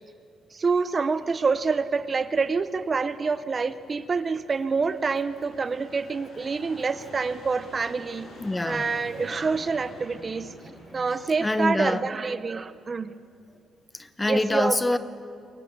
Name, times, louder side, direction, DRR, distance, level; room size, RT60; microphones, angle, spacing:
voice 1, 0.5-8.3 8.7-10.6 10.9-13.1 14.3-14.8, right 4 dB, 35° right, 14 dB, 0.7 m, -27 dB
sound 1, 1.2-11.4, left 1 dB, 60° left, 7.1 m, -48 dB
voice 2, 8.3-8.9 10.9-12.1 13.9-15.0, left 2 dB, 15° left, 13 dB, 0.9 m, -26 dB
23.0 x 19.5 x 6.9 m, 2.4 s
cardioid pair, 90°, 0 cm